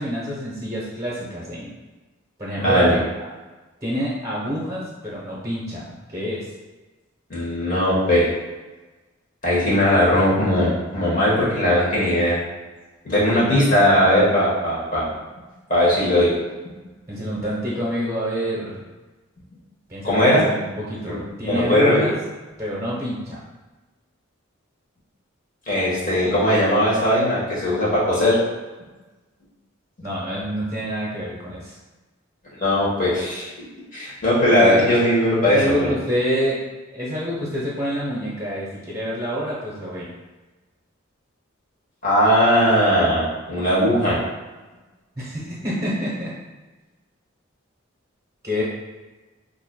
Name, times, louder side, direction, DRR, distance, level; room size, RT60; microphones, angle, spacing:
voice 1, 0.0-1.7 2.4-3.0 3.8-6.5 13.1-13.7 17.1-18.8 19.9-22.1 22.6-23.4 30.0-31.8 34.5-34.9 35.4-36.6 36.9-40.1 45.2-46.3 48.4-48.6, equal, 15° right, -6 dB, 0.8 m, -27 dB
voice 2, 2.6-3.0 7.3-8.3 9.4-12.4 13.0-15.1 15.7-16.3 20.0-20.4 21.1-21.2 21.4-22.1 25.7-28.4 32.6-33.5 33.9-35.9 42.0-44.2, equal, 40° left, -8 dB, 1.2 m, -18 dB
5.6 x 2.6 x 2.2 m, 1.2 s
head